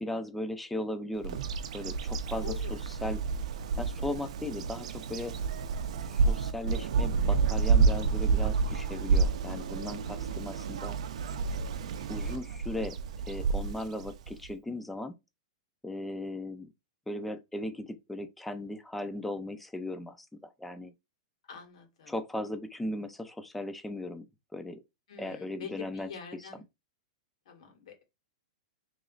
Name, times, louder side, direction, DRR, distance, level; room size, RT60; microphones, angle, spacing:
voice 1, 0.0-1.4 1.7-3.2 3.8-5.3 6.1-11.0 12.1-13.0 13.3-15.1 15.8-16.7 17.1-20.9 22.1-24.2 24.5-24.8 25.2-26.6, left 1 dB, 5° left, 0.4 m, -37 dB
Bird vocalization bird call bird song, 1.2-14.5, right 5 dB, 75° right, 0.5 m, -29 dB
voice 2, 2.4-2.8 5.3-5.5 11.8-12.5 21.5-22.1 25.1-26.6 27.4-28.0, left 7 dB, 75° left, 1.7 m, -46 dB
3.1 x 2.9 x 3.8 m
supercardioid pair, 165°, 3 cm